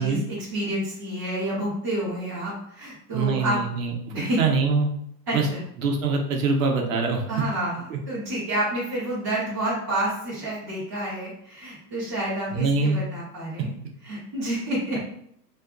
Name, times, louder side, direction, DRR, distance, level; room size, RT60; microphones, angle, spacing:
voice 1, 0.0-3.6 4.1-4.4 5.3-5.6 7.3-13.7 14.0-15.0, right 1 dB, 10° right, -14 dB, 0.3 m, -29 dB
voice 2, 3.1-4.9 5.3-5.5 5.8-7.2 7.9-8.0 12.5-13.0, right 4 dB, 55° right, 2 dB, 0.6 m, -24 dB
2.7 x 2.3 x 2.3 m, 0.68 s
supercardioid pair, 160°, 49 cm